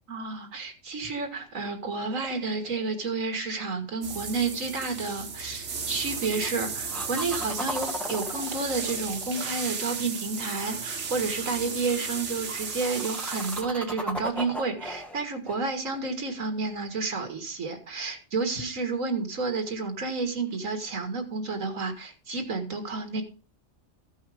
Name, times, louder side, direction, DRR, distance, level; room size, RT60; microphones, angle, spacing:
voice 1, 0.1-23.2, right 4 dB, 90° right, 5 dB, 2.1 m, -31 dB
sound 1, 2.1-3.3 6.0-6.5 6.9-10.2 12.4-16.8 20.5-20.6, equal, ahead, 1.3 m, -38 dB
sound 2, 4.0-13.6, right 5 dB, 65° right, 1.6 m, -34 dB
14.5 x 5.6 x 4.9 m, 0.37 s
omnidirectional pair, 1.3 m